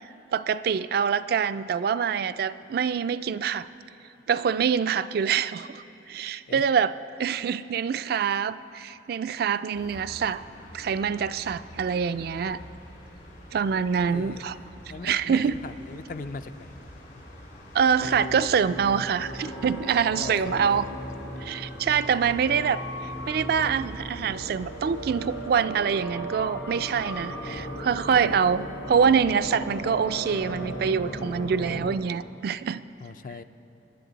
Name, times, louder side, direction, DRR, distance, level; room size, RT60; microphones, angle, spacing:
voice 1, 0.3-3.7 4.3-6.9 7.2-10.4 10.7-12.6 13.5-14.5 15.0-15.5 17.7-20.9 21.4-22.8 23.3-32.8, right 7 dB, 55° right, 13 dB, 0.3 m, -25 dB
sound 1, 9.7-25.5, equal, 65° left, 2.8 m, -46 dB
voice 2, 14.1-16.7 17.2-17.3 20.2-21.0 22.2-22.7 28.2-28.4 33.0-33.4, left 3 dB, 50° left, 10 dB, 0.4 m, -40 dB
sound 2, 18.0-31.9, equal, 90° left, 1.5 m, -36 dB
23.5 x 10.0 x 4.0 m, 2.9 s
head